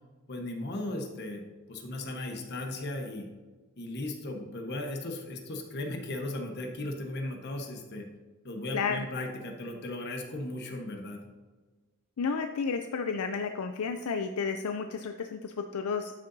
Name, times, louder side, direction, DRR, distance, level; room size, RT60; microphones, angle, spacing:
voice 1, 0.3-3.3 3.8-8.1 8.4-11.2, left 1 dB, 50° left, 2 dB, 1.1 m, -36 dB
voice 2, 8.7-9.1 12.2-16.1, left 5 dB, 75° left, 6 dB, 0.5 m, -32 dB
11.5 x 6.6 x 2.7 m, 1.3 s
head